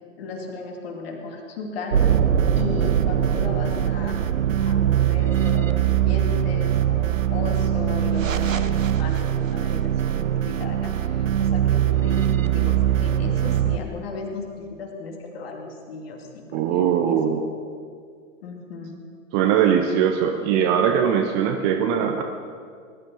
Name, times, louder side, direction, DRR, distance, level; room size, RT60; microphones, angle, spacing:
voice 1, 0.2-2.0 2.5-4.2 4.6-17.2 18.4-19.0, left 4 dB, 45° left, 2 dB, 2.7 m, -35 dB
sound 1, 1.9-13.8, right 10 dB, 70° right, 0.8 m, -22 dB
voice 2, 16.5-17.5 19.3-22.2, right 8 dB, 20° right, 5 dB, 0.6 m, -21 dB
19.5 x 11.5 x 5.2 m, 2.1 s
figure-of-eight pair, 110°, 41 cm